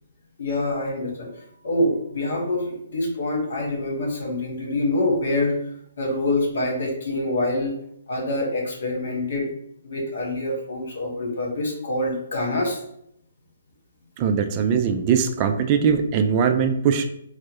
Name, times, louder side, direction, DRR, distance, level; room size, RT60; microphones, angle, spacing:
voice 1, 0.4-1.3 1.6-5.6 6.0-7.7 8.1-9.5 9.8-12.8, left 1 dB, 65° left, 0 dB, 1.3 m, -25 dB
voice 2, 14.2-17.1, right 7 dB, 30° right, 6 dB, 0.3 m, -21 dB
4.4 x 2.0 x 3.0 m, 0.72 s
hypercardioid pair, 145°, 0 cm